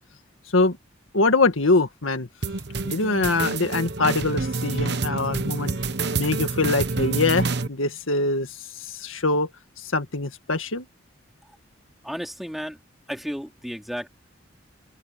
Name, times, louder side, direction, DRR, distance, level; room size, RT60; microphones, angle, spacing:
voice 1, 1.1-2.3 2.8-5.7 6.2-8.5 8.9-9.5 9.9-10.9, left 3 dB, 85° left, 1.9 m, -23 dB
sound 1, 2.4-7.7, right 3 dB, 55° right, 1.1 m, -27 dB
voice 2, 12.0-12.8 13.1-14.1, equal, ahead, 3.5 m, -33 dB
open air
head